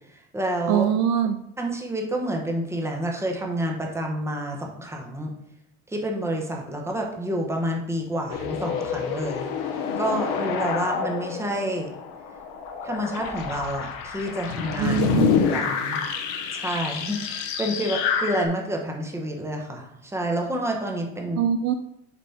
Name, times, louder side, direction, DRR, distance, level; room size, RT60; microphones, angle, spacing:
voice 1, 0.1-0.9 1.6-5.3 5.9-9.5 10.0-11.9 12.8-15.1 15.5-16.0 16.5-21.4, right 1 dB, 10° right, 1 dB, 1.1 m, -29 dB
voice 2, 0.7-1.4 14.8-15.4 21.4-21.7, right 8 dB, 55° right, 9 dB, 0.5 m, -22 dB
sound 1, 8.3-18.5, left 6 dB, 70° left, 1.1 m, -28 dB
7.1 x 4.2 x 4.3 m, 0.77 s
supercardioid pair, 130°, 31 cm